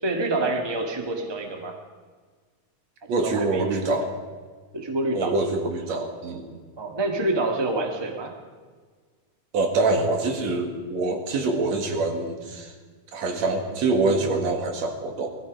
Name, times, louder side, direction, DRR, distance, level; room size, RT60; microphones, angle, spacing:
voice 1, 0.0-1.8 3.2-3.8 4.7-5.3 6.8-8.3, right 2 dB, 10° right, 3 dB, 1.3 m, -27 dB
voice 2, 3.1-4.2 5.1-6.5 9.5-12.7 13.1-15.3, right 3 dB, 65° right, 4 dB, 3.0 m, -25 dB
20.0 x 13.5 x 5.3 m, 1.5 s
omnidirectional pair, 3.3 m